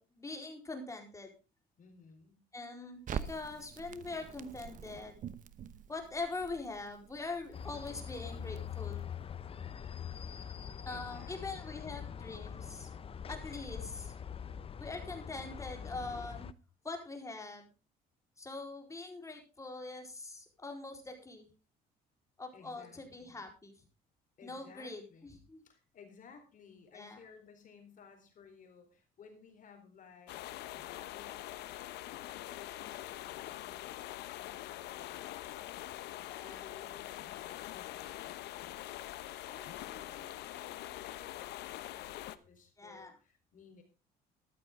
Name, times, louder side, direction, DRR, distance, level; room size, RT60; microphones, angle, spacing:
voice 1, 0.0-1.3 2.5-5.2 5.9-9.1 10.9-12.9 13.3-14.2 14.8-16.5 16.8-17.7 18.4-21.5 22.4-23.7 24.4-25.6 26.9-27.2 36.3-36.6 42.8-43.1, left 3 dB, 20° left, 3 dB, 4.2 m, -43 dB
voice 2, 1.8-2.4 10.9-11.8 19.2-19.3 22.5-23.4 24.4-25.4 25.6-30.4 30.7-31.8 32.2-34.0 34.4-43.8, left 6 dB, 50° left, 5 dB, 4.1 m, -58 dB
Crackle, 3.1-9.2, right 8 dB, 50° right, 1.0 m, -46 dB
sound 1, 7.5-16.5, left 8 dB, 35° left, 0.7 m, -43 dB
sound 2, 30.3-42.4, left 15 dB, 80° left, 1.0 m, -44 dB
14.0 x 12.0 x 3.7 m, 0.31 s
cardioid pair, 110°, 17 cm